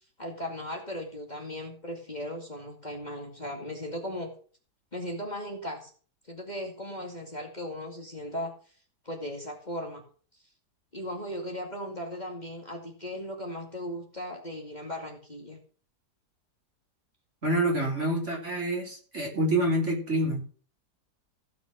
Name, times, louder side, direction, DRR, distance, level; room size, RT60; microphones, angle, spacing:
voice 1, 0.2-4.3 4.9-5.9 6.3-8.5 9.0-10.0 10.9-15.6, equal, 25° left, 1 dB, 2.4 m, -37 dB
voice 2, 17.4-20.4, right 1 dB, 40° right, -1 dB, 4.0 m, -27 dB
16.0 x 6.1 x 6.6 m, 0.43 s
omnidirectional pair, 1.8 m